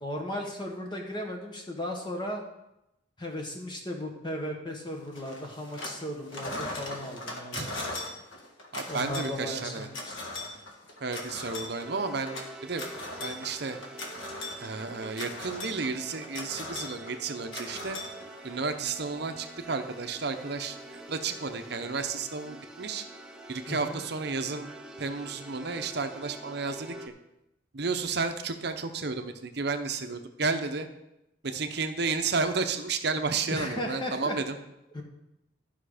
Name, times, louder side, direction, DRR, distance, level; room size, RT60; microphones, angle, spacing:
voice 1, 0.0-2.4 3.2-7.7 8.9-10.1 23.7-24.0 33.5-34.4 34.9-35.0, left 1 dB, 25° left, 2 dB, 1.4 m, -36 dB
sound 1, 5.1-6.0 6.3-18.7, left 2 dB, 80° left, 1.7 m, -39 dB
voice 2, 8.7-9.9 11.0-12.9 13.2-13.8 14.6-18.0 18.4-23.0 23.5-24.7 25.0-26.9 27.7-30.9 31.4-34.6, right 4 dB, 55° right, 7 dB, 0.7 m, -32 dB
sound 2, 11.8-27.1, right 2 dB, 5° right, 0.7 m, -46 dB
12.5 x 5.7 x 5.0 m, 0.89 s
head